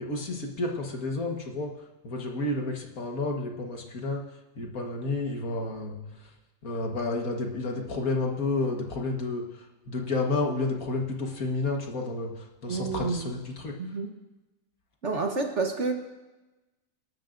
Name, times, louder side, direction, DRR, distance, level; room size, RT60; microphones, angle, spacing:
voice 1, 0.0-1.7 2.0-6.3 6.6-13.7, left 2 dB, 55° left, 1 dB, 1.8 m, -31 dB
voice 2, 12.7-13.3 13.8-14.1 15.0-15.9, right 4 dB, 50° right, 3 dB, 1.3 m, -29 dB
26.0 x 12.5 x 2.6 m, 1.1 s
omnidirectional pair, 1.8 m